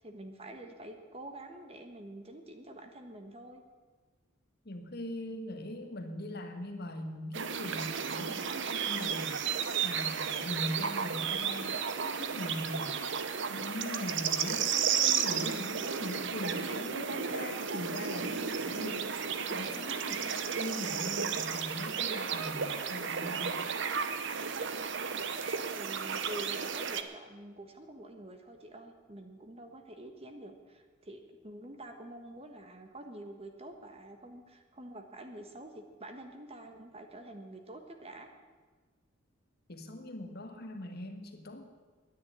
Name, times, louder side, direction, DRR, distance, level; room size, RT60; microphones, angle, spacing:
voice 1, 0.0-3.6 25.7-38.3, right 1 dB, 30° right, 6 dB, 1.3 m, -47 dB
voice 2, 4.6-13.2 13.5-23.6 39.7-41.7, left 1 dB, 50° left, 5 dB, 1.6 m, -41 dB
sound 1, 7.3-27.0, right 6 dB, 60° right, 0.8 m, -33 dB
10.0 x 10.0 x 9.7 m, 1.4 s
head